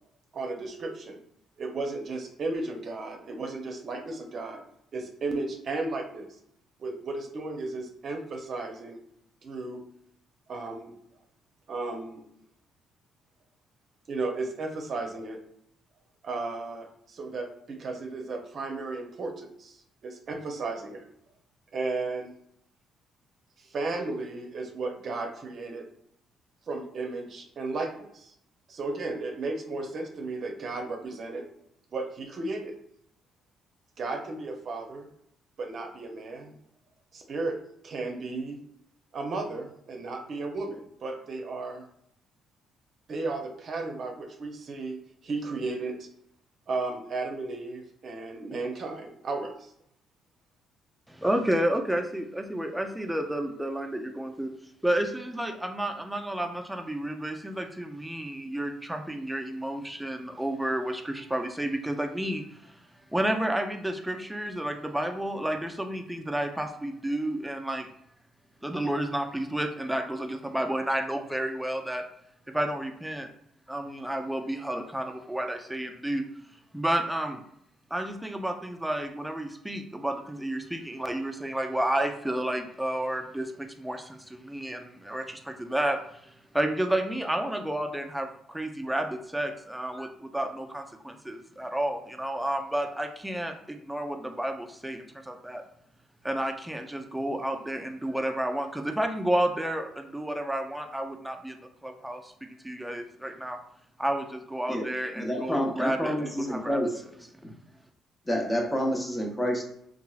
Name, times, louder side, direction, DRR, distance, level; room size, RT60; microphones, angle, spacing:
voice 1, 0.3-1.2 1.6-4.6 4.9-6.4 6.8-9.0 9.4-9.8 10.5-10.9 11.7-12.2 14.1-15.4 16.2-21.0 21.7-22.3 23.6-25.8 26.7-28.3 28.7-31.4 31.9-32.7 34.0-35.1 35.6-36.6 37.1-37.5 37.8-38.6 39.1-41.9 43.1-45.9 46.7-49.7, right 3 dB, 55° right, 2 dB, 0.6 m, -34 dB
voice 2, 51.1-54.5 54.8-62.7 63.1-67.9 68.6-72.0 72.5-73.3 73.7-76.2 76.7-77.4 77.9-95.6 96.2-102.3 102.6-103.6 104.0-106.8, right 1 dB, 5° right, 4 dB, 0.4 m, -31 dB
voice 3, 104.7-107.0 107.4-107.5 108.3-109.6, equal, 20° left, 0 dB, 0.8 m, -29 dB
2.8 x 2.4 x 2.3 m, 0.73 s
supercardioid pair, 65°, 0 cm